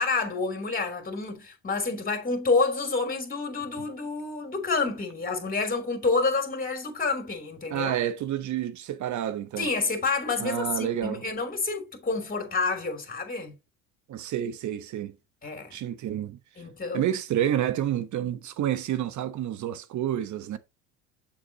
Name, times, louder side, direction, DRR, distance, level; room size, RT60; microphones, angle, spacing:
voice 1, 0.0-8.0 9.6-13.5 15.4-15.7 16.6-17.1, left 3 dB, 20° left, 3.3 m, -28 dB
voice 2, 7.7-9.7 10.4-11.2 14.1-15.1 15.7-16.4 16.9-20.6, right 11 dB, 45° right, 1.1 m, -29 dB
7.2 x 7.1 x 2.9 m
hypercardioid pair, 75°, 41 cm